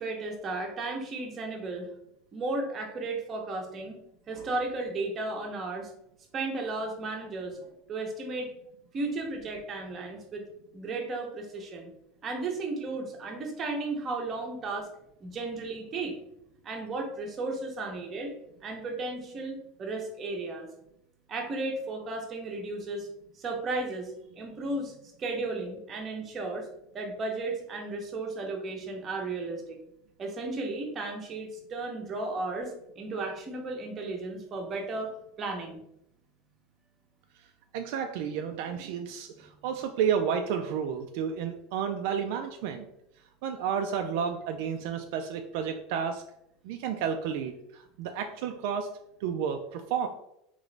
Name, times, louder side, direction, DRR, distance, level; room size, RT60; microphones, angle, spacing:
voice 1, 0.0-1.9 2.3-4.0 4.3-5.9 6.3-8.5 8.9-10.4 10.7-11.9 12.2-14.9 15.2-16.2 16.6-18.3 18.6-20.7 21.3-23.1 23.4-26.6 26.9-29.8 30.2-35.1 35.4-35.8, right 3 dB, 25° right, 2 dB, 0.7 m, -34 dB
voice 2, 37.7-42.9 43.4-46.2 46.6-48.9 49.2-50.1, right 7 dB, 65° right, 5 dB, 0.3 m, -31 dB
3.8 x 3.0 x 3.2 m, 0.78 s
supercardioid pair, 160°, 0 cm